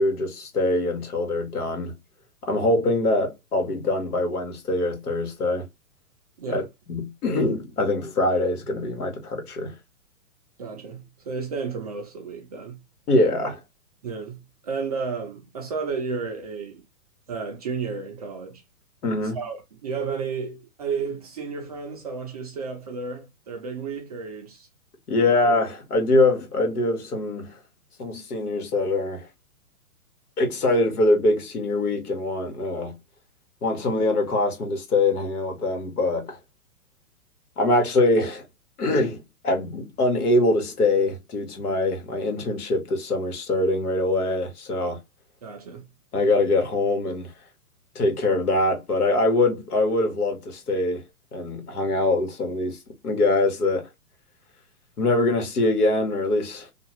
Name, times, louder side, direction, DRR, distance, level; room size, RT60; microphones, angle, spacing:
voice 1, 0.0-1.9 2.4-5.6 6.5-6.6 6.9-9.7 13.1-13.6 19.0-19.4 25.1-27.5 28.0-29.2 30.4-32.9 33.6-36.4 37.6-38.4 38.8-45.0 46.1-47.3 47.9-51.0 51.3-52.8 53.0-53.9 55.0-56.7, left 2 dB, 80° left, 1.5 m, -23 dB
voice 2, 10.6-12.8 14.0-16.8 17.3-18.6 19.3-24.7 25.2-25.4 45.4-45.9, right 5 dB, 30° right, 0.4 m, -32 dB
2.8 x 2.3 x 3.0 m
hypercardioid pair, 135°, 45 cm